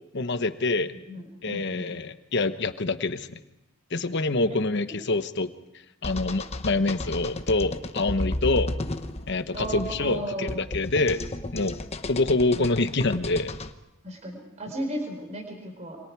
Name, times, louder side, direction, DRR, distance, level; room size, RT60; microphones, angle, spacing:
voice 1, 0.1-0.9 1.4-3.4 3.9-5.5 6.0-8.7 9.3-11.2 11.5-11.8 12.1-13.5, left 2 dB, 55° left, 10 dB, 1.1 m, -26 dB
voice 2, 0.9-1.9 9.5-10.5 14.0-16.0, right 1 dB, 30° right, 4 dB, 4.9 m, -35 dB
sound 1, 6.0-13.7, left 1 dB, 30° left, 1.1 m, -33 dB
28.5 x 25.5 x 4.8 m, 0.86 s
head